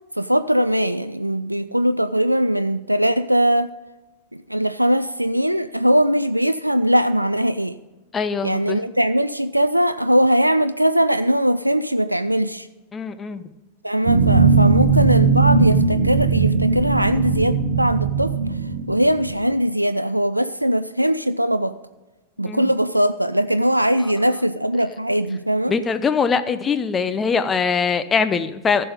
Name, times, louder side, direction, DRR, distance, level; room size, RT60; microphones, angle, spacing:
voice 1, 0.2-3.7 4.3-7.8 8.4-12.7 13.8-18.6 18.9-21.8 22.4-25.7, equal, 90° right, 12 dB, 0.3 m, -20 dB
voice 2, 8.1-8.8 12.9-13.5 22.5-22.7 25.7-28.8, left 5 dB, 20° left, 11 dB, 0.7 m, -22 dB
sound 1, 14.1-19.3, right 4 dB, 70° right, 0.9 m, -18 dB
15.0 x 5.6 x 5.0 m, 1.1 s
figure-of-eight pair, 90°, 0 cm